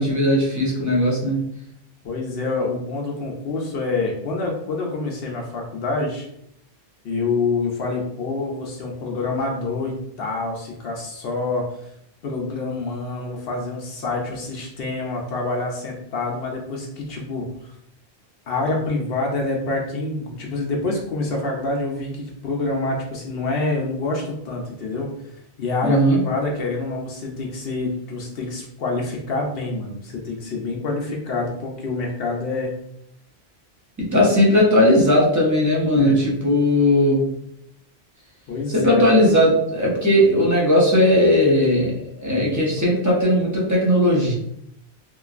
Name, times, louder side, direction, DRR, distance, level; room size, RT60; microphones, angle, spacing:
voice 1, 0.0-1.4 25.8-26.2 34.0-37.3 38.7-44.3, left 1 dB, 20° right, -4 dB, 0.7 m, -18 dB
voice 2, 2.0-6.3 7.0-11.8 12.2-17.7 18.5-25.1 25.6-32.7 35.9-36.2 38.5-39.0, left 3 dB, 65° left, 0 dB, 0.8 m, -27 dB
3.0 x 2.5 x 2.4 m, 0.74 s
omnidirectional pair, 1.1 m